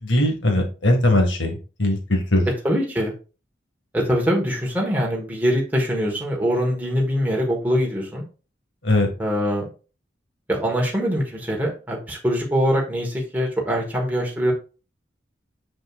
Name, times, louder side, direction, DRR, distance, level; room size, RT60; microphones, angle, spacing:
voice 1, 0.0-2.5 8.8-9.1, left 1 dB, 85° left, 3 dB, 2.0 m, -20 dB
voice 2, 2.6-3.1 3.9-8.2 9.2-9.6 10.5-14.5, equal, 10° right, -2 dB, 1.4 m, -23 dB
6.3 x 6.1 x 2.5 m, 0.34 s
head